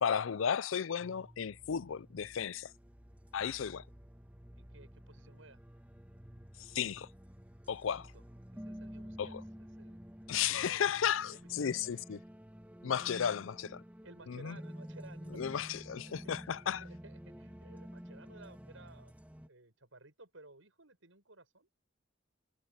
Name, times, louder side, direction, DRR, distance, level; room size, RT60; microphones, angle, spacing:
voice 1, 0.0-2.7 3.3-3.8 6.7-7.1 7.7-8.1 9.2-9.4 10.3-12.2 12.8-13.8 14.3-14.6 15.3-16.8, left 8 dB, 80° left, 0.5 m, -34 dB
sound 1, 1.0-19.5, equal, 10° right, 1.4 m, -51 dB
voice 2, 4.6-5.6 7.9-8.2 8.5-10.0 11.2-12.0 12.9-13.1 14.0-15.4 16.1-16.2 16.5-19.1 19.5-21.7, right 2 dB, 80° right, 7.7 m, -57 dB
head